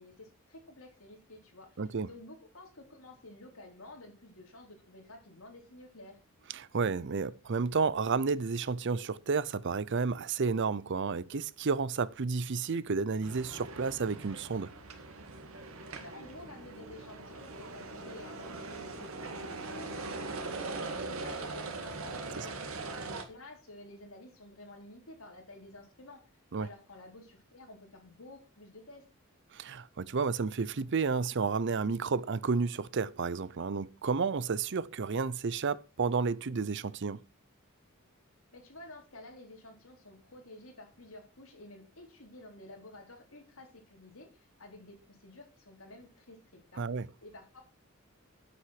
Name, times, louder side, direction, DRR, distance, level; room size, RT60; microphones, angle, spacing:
voice 1, 0.0-6.2 16.0-22.6 22.9-26.2 26.6-29.0 38.5-46.9 47.2-47.6, left 2 dB, 75° left, 3.9 m, -52 dB
voice 2, 1.8-2.1 6.5-14.7 22.4-22.5 26.5-26.7 29.5-37.2 46.8-47.1, right 4 dB, 55° right, 0.6 m, -31 dB
sound 1, 13.2-23.2, right 3 dB, 75° right, 2.0 m, -41 dB
8.7 x 8.1 x 5.9 m
head